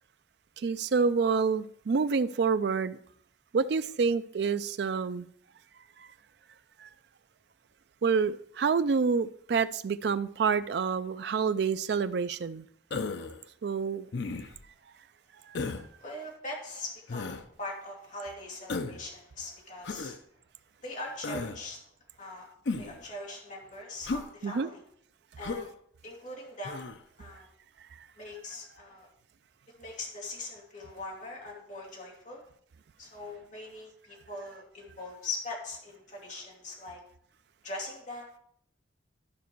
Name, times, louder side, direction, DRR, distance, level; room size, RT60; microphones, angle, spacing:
voice 1, 0.6-3.0 3.5-5.3 6.0-6.1 6.8-6.9 8.0-12.7 13.6-14.1 15.5-15.6 24.4-24.7, right 5 dB, 60° right, 14 dB, 0.4 m, -28 dB
Human voice, 12.9-13.4 14.1-14.6 15.6-15.9 17.1-17.4 18.7-19.0 19.8-20.2 21.2-21.6 22.7-23.0 24.0-24.3 25.4-25.7 26.6-27.0, left 3 dB, 65° left, 0.6 m, -34 dB
voice 2, 16.0-20.2 20.8-21.8 22.2-22.5 22.8-24.8 25.4-25.7 26.0-27.5 28.2-29.1 29.8-32.4 33.0-37.0 37.6-38.3, left 2 dB, 40° left, -2 dB, 2.3 m, -41 dB
12.5 x 5.1 x 4.6 m, 0.67 s
head